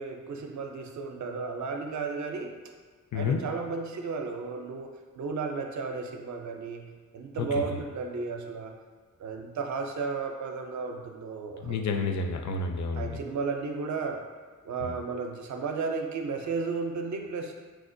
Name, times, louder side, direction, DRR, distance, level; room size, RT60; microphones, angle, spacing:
voice 1, 0.0-2.6 3.1-8.7 9.2-11.7 12.9-14.2 14.6-17.5, right 4 dB, 60° right, 4 dB, 0.5 m, -34 dB
voice 2, 3.1-3.4 7.4-7.6 11.6-13.2 14.8-14.9, left 4 dB, 60° left, 5 dB, 0.4 m, -30 dB
4.6 x 2.1 x 2.5 m, 1.5 s
cardioid pair, 60°, 33 cm